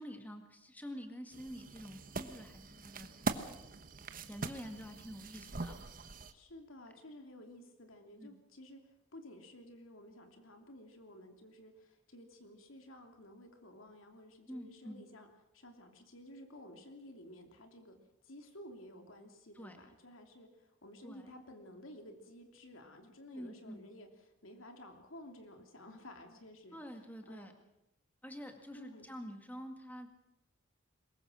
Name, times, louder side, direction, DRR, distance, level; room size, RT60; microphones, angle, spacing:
voice 1, 0.0-3.1 3.6-3.8 4.3-5.9 8.2-8.4 14.5-15.0 19.6-19.8 21.0-21.3 23.3-23.9 26.7-27.5 28.2-30.1, equal, 10° left, 5 dB, 2.0 m, -47 dB
sound 1, 1.3-6.3, right 3 dB, 45° right, 1.2 m, -42 dB
voice 2, 6.3-8.8 9.1-15.3 15.5-18.0 18.2-26.8 27.3-27.5 28.7-29.1, left 1 dB, 90° left, 5 dB, 3.0 m, -53 dB
23.0 x 21.0 x 6.3 m, 0.86 s
head